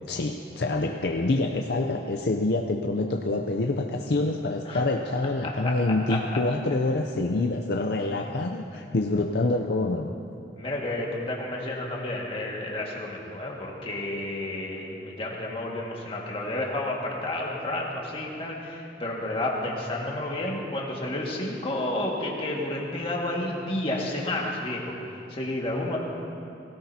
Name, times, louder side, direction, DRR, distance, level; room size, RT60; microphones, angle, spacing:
voice 1, 0.1-10.1, left 2 dB, 60° left, 3 dB, 0.5 m, -26 dB
voice 2, 5.4-6.2 8.2-8.4 8.7-8.8 10.6-24.9 25.3-26.0, left 1 dB, 30° left, -2 dB, 1.8 m, -31 dB
18.0 x 17.0 x 2.8 m, 2.6 s
head